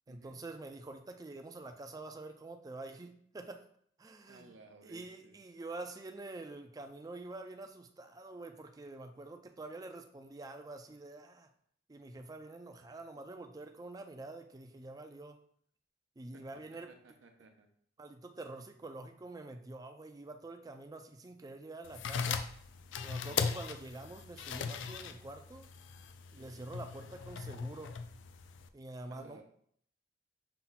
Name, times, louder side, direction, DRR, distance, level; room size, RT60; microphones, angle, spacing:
voice 1, 0.1-3.6 4.0-4.5 4.8-11.5 11.9-15.4 16.2-16.9 18.0-22.4 23.0-25.7 26.3-28.0 28.7-29.4, right 2 dB, 20° right, 6 dB, 0.3 m, -47 dB
voice 2, 4.3-5.4 16.3-16.6 16.9-17.7 23.2-23.5 26.4-26.7 29.1-29.4, right 3 dB, 85° right, 5 dB, 0.7 m, -58 dB
sound 1, 21.8-28.7, left 6 dB, 70° left, 0.3 m, -39 dB
5.6 x 2.3 x 4.0 m, 0.65 s
head